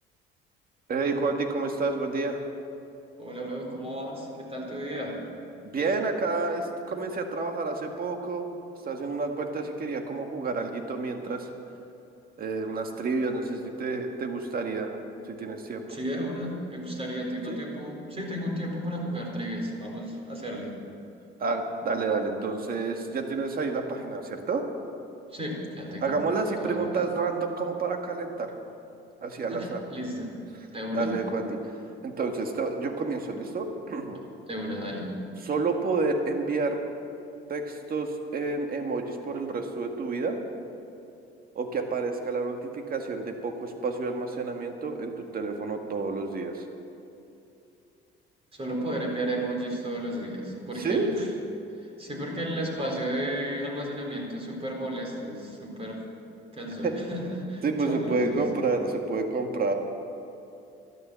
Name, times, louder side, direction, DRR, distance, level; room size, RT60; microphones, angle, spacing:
voice 1, 0.9-2.4 5.6-8.5 8.8-11.5 12.4-15.0 15.3-15.8 17.5-17.6 21.4-24.6 26.0-28.5 29.2-29.8 30.9-31.7 32.0-34.2 35.4-36.8 37.5-40.4 41.6-46.6 50.8-51.1 56.8-57.0 57.6-59.7, right 3 dB, 45° right, 4 dB, 1.9 m, -29 dB
voice 2, 3.2-5.2 15.9-20.7 25.3-26.2 26.6-26.9 29.5-30.3 30.7-31.1 34.4-35.1 48.5-51.3 52.0-56.0 56.5-58.5, equal, 30° right, 0 dB, 4.1 m, -33 dB
12.5 x 12.5 x 7.6 m, 2.7 s
cardioid pair, 95°, 21 cm